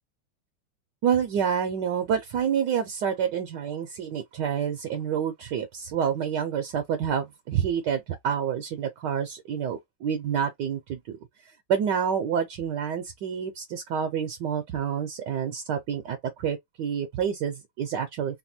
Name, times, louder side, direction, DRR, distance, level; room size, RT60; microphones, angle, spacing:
voice 1, 1.0-11.2 11.7-18.4, right 8 dB, 70° right, 1.2 m, -28 dB
4.1 x 2.2 x 2.7 m
omnidirectional pair, 2.2 m